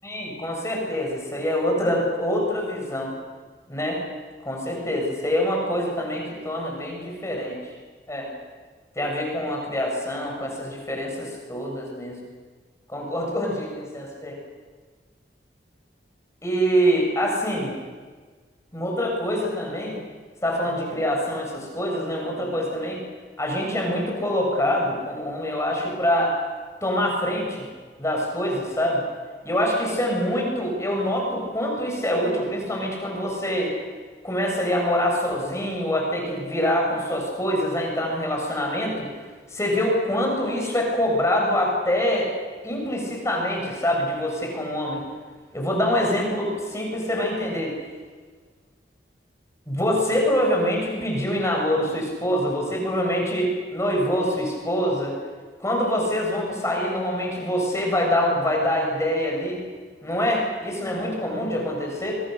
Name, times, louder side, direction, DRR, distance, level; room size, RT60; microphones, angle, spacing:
voice 1, 0.0-3.1 3.7-4.0 4.4-7.6 8.1-8.3 9.0-12.2 12.9-14.4 16.4-17.7 18.7-20.0 20.4-23.0 23.4-26.4 26.8-27.7 28.0-29.0 29.4-33.7 34.2-39.1 39.5-42.3 42.6-45.0 45.5-47.7 49.7-55.2 55.6-59.6 60.0-62.2, equal, 15° left, 0 dB, 7.3 m, -25 dB
29.0 x 25.0 x 6.8 m, 1.5 s
head